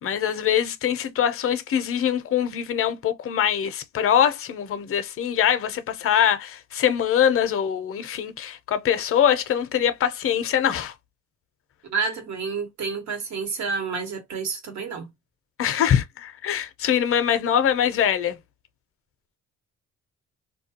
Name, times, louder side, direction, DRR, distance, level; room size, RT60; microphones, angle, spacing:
voice 1, 0.0-10.9 15.6-18.4, left 9 dB, 45° left, 0.5 m, -23 dB
voice 2, 11.8-15.1, right 5 dB, 65° right, 1.1 m, -29 dB
2.3 x 2.2 x 2.7 m
cardioid pair, 90°, 30 cm